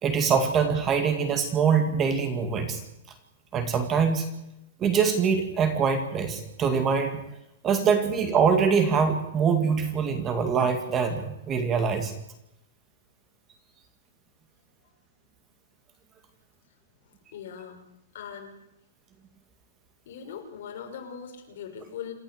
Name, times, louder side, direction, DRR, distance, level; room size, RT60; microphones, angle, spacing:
voice 1, 0.0-2.8 3.5-4.3 4.8-7.3 7.6-12.1, right 6 dB, 20° right, 7 dB, 2.1 m, -24 dB
voice 2, 17.3-17.8 18.1-18.5 20.1-22.1, left 8 dB, 55° left, 2 dB, 5.9 m, -40 dB
27.5 x 13.0 x 8.0 m, 0.85 s
supercardioid pair, 170°, 0 cm